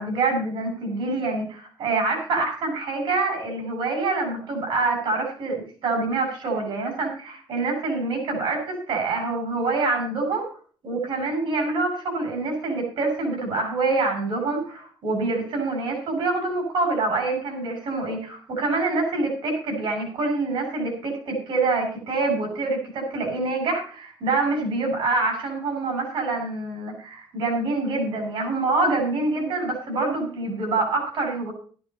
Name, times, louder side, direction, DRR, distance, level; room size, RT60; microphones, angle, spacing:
voice 1, 0.0-10.5 10.8-31.5, right 3 dB, 60° right, 4 dB, 6.7 m, -26 dB
13.5 x 11.5 x 4.3 m, 0.43 s
cardioid pair, 155°, 9 cm